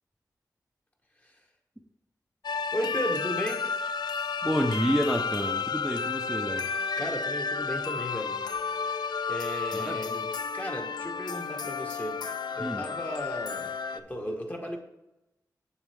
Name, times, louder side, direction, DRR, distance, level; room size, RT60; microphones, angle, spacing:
sound 1, 2.4-14.0, left 5 dB, 80° left, 0.4 m, -32 dB
voice 1, 2.7-3.7 7.0-8.4 9.3-10.1 10.5-12.2 12.5-14.8, equal, 20° left, 1 dB, 1.4 m, -35 dB
voice 2, 4.4-6.7 9.7-10.3 12.6-12.9, equal, ahead, 0 dB, 0.8 m, -29 dB
7.2 x 7.1 x 3.5 m, 0.94 s
wide cardioid pair, 75°, 7 cm